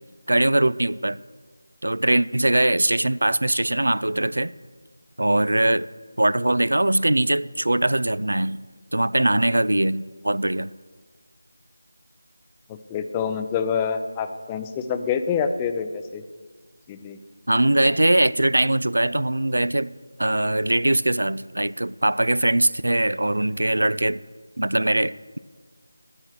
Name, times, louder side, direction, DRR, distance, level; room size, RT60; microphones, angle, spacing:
voice 1, 0.3-1.2 1.8-4.5 5.2-5.9 6.2-8.6 8.9-10.7 17.5-19.9 20.2-24.2 24.6-25.4, right 1 dB, 85° right, 0.3 m, -21 dB
voice 2, 12.7-16.2 16.9-17.2, left 6 dB, 15° left, 0.4 m, -27 dB
9.7 x 9.5 x 6.4 m
figure-of-eight pair, 170°, 0 cm